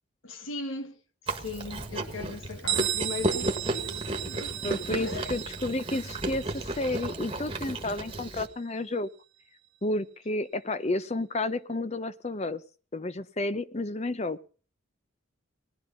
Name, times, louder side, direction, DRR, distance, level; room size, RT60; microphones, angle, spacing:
voice 1, 0.2-4.6 5.0-5.4, left 3 dB, 75° left, 1.3 m, -38 dB
Chewing mastication, 1.3-8.5, right 2 dB, 25° right, 1.5 m, -34 dB
Bell, 2.7-8.2, right 12 dB, 70° right, 1.0 m, -35 dB
voice 2, 4.6-9.1 9.8-12.6 12.9-14.4, left 2 dB, 30° left, 0.7 m, -31 dB
18.5 x 11.0 x 5.6 m
head